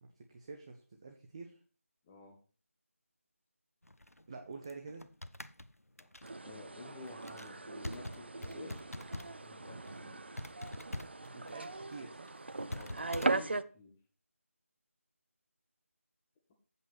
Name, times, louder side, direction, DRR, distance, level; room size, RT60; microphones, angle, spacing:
voice 1, 0.0-1.6 4.3-5.1 11.2-12.3, right 4 dB, 25° right, 4 dB, 0.9 m, -48 dB
voice 2, 2.0-2.4 6.0-6.1 6.4-8.9 9.2-10.4 11.3-11.4 12.7-14.0, left 3 dB, 5° left, 3 dB, 0.3 m, -52 dB
sound 1, 3.8-9.5 9.8-10.0 10.4-13.3, left 1 dB, 85° left, 0.8 m, -45 dB
sound 2, 6.2-13.6, right 2 dB, 50° right, 0.6 m, -39 dB
8.3 x 7.1 x 4.3 m, 0.37 s
figure-of-eight pair, 160°, 8 cm